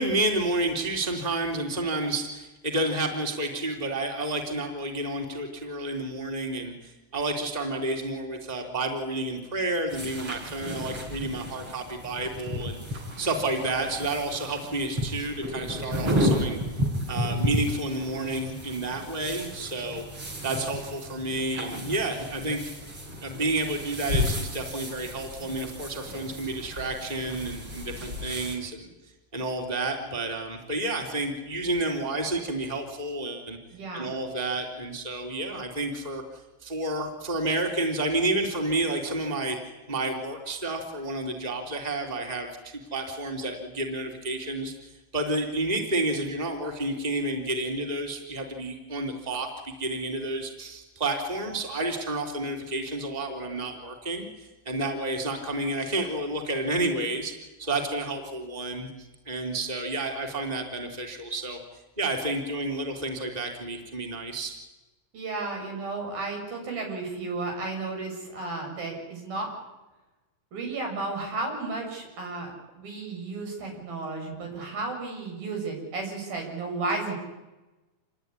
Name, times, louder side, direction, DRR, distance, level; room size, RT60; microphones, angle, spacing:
voice 1, 0.0-16.6 17.1-20.0 20.4-22.6 23.2-28.9 29.3-33.6 33.9-39.6 39.9-57.3 57.6-61.6 62.0-64.5, right 2 dB, 10° right, 2 dB, 3.4 m, -30 dB
sound 1, 9.9-28.6, left 1 dB, 35° right, 6.2 m, -33 dB
voice 2, 33.7-34.1 65.1-69.5 70.5-77.2, right 3 dB, 75° right, 2 dB, 8.9 m, -33 dB
28.0 x 21.5 x 9.9 m, 1.1 s
omnidirectional pair, 4.2 m